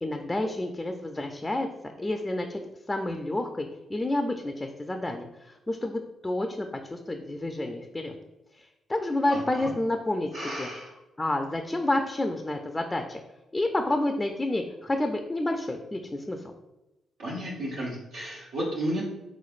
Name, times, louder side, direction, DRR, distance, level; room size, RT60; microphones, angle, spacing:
voice 1, 0.0-2.6 2.9-8.2 8.6-10.3 10.6-10.7 11.2-13.2 13.5-16.4, left 1 dB, 20° left, 5 dB, 0.4 m, -29 dB
voice 2, 9.3-9.7 10.3-10.9 17.2-19.0, right 1 dB, 85° right, -7 dB, 0.8 m, -33 dB
3.7 x 3.1 x 2.4 m, 0.98 s
supercardioid pair, 50°, 0 cm